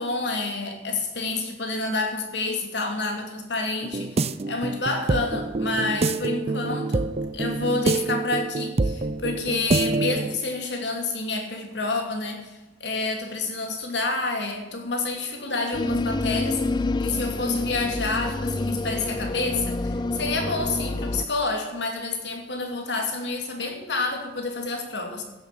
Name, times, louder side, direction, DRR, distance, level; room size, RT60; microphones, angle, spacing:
voice 1, 0.0-7.1 7.3-25.2, left 3 dB, 75° left, 3 dB, 2.7 m, -29 dB
sound 1, 3.8-10.4, right 3 dB, 35° right, 0.5 m, -26 dB
sound 2, 15.7-21.3, left 2 dB, 25° left, 0.4 m, -27 dB
15.5 x 7.5 x 7.9 m, 1.1 s
head